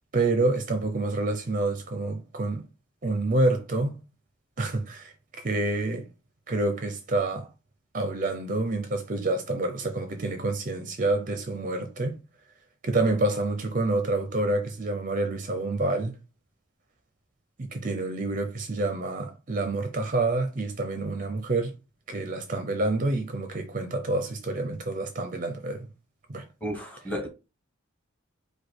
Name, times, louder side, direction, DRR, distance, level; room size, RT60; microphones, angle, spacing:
voice 1, 0.1-2.6 3.0-3.9 4.6-6.1 6.5-7.5 7.9-12.2 12.8-16.1 17.6-21.7 22.1-25.9 26.3-26.4, right 2 dB, 40° right, 0.5 m, -28 dB
voice 2, 26.6-27.3, equal, 5° left, 1.2 m, -32 dB
4.9 x 2.2 x 4.4 m
head